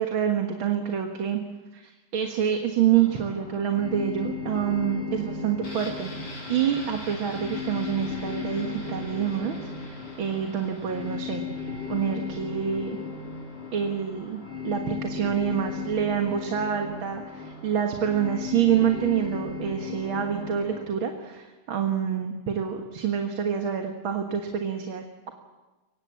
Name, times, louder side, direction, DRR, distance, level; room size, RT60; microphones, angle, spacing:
voice 1, 0.0-1.4 1.7-6.1 6.5-13.0 13.7-14.4 14.6-25.3, right 8 dB, 75° right, 4 dB, 2.4 m, -27 dB
sound 1, 2.9-20.8, left 6 dB, 30° left, 2.4 m, -36 dB
sound 2, 5.6-15.3 15.6-15.7, left 1 dB, 75° left, 5.9 m, -44 dB
23.5 x 20.0 x 7.4 m, 1.2 s
omnidirectional pair, 2.2 m